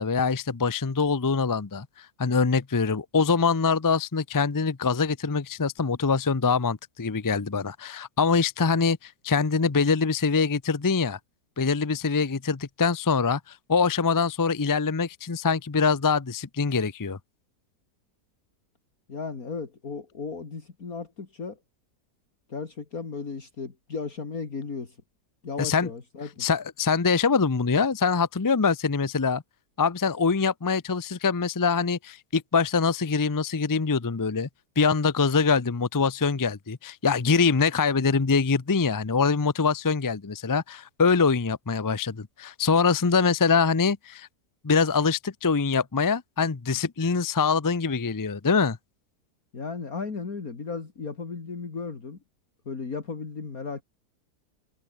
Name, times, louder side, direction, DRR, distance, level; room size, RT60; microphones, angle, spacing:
voice 1, 0.0-11.2 11.6-17.2 25.6-25.9 26.4-29.4 29.8-34.5 34.8-44.3 44.6-48.8, left 5 dB, 30° left, 0.4 m, -24 dB
voice 2, 19.1-21.6 22.5-25.0 25.4-26.5 49.5-52.2 52.7-53.8, left 4 dB, 60° left, 3.1 m, -35 dB
omnidirectional pair, 1.7 m